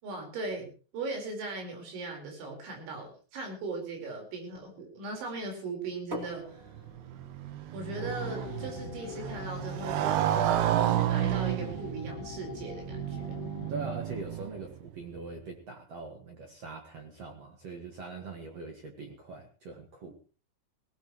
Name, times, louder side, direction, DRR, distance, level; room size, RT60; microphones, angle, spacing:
voice 1, 0.0-6.6 7.7-13.3, right 3 dB, 90° right, 3 dB, 6.7 m, -39 dB
sound 1, 6.1-11.8, equal, 20° right, 1.8 m, -48 dB
Motorcycle, 6.7-14.8, right 12 dB, 75° right, 2.8 m, -31 dB
sound 2, 7.9-13.7, left 10 dB, 75° left, 3.1 m, -44 dB
voice 2, 13.7-20.2, right 3 dB, 50° right, 3 dB, 2.0 m, -42 dB
19.0 x 18.0 x 3.1 m, 0.35 s
omnidirectional pair, 5.2 m